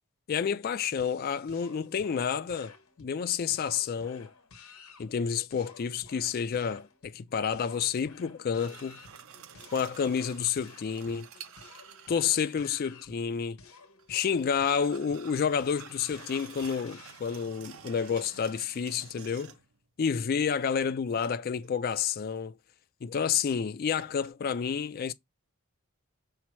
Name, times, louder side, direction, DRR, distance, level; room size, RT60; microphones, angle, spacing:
voice 1, 0.3-4.3 5.0-9.0 9.7-11.3 12.1-13.6 14.1-19.5 20.0-22.6 23.0-25.1, left 7 dB, 45° left, 0.3 m, -30 dB
sound 1, 1.0-17.2, left 4 dB, 80° left, 1.1 m, -54 dB
sound 2, 8.6-12.8 14.0-19.8 21.2-21.8 24.0-24.3, right 7 dB, 70° right, 0.7 m, -50 dB
5.6 x 2.0 x 4.4 m
head